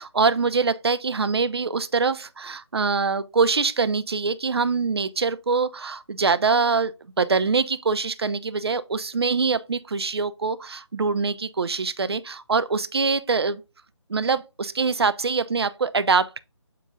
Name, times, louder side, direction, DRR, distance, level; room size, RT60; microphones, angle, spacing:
voice 1, 0.0-6.9 7.2-13.6 14.1-16.4, right 4 dB, 55° right, 0.6 m, -24 dB
7.5 x 4.0 x 3.6 m
figure-of-eight pair, 150°, 16 cm